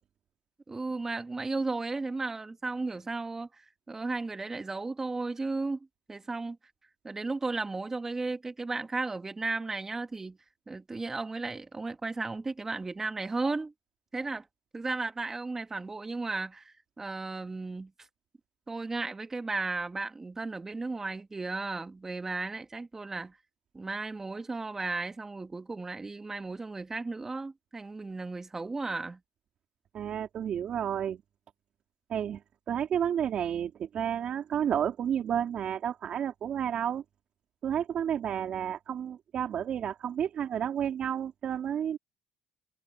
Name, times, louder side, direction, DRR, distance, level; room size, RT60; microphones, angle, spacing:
voice 1, 0.7-6.6 7.0-10.4 10.7-13.7 14.1-14.5 14.7-17.9 18.7-23.4 23.7-29.2, right 3 dB, 20° right, 2.4 m, -35 dB
voice 2, 29.9-31.2 32.1-32.4 32.7-37.0 37.6-42.0, right 9 dB, 55° right, 4.1 m, -31 dB
supercardioid pair, 90°, 2 cm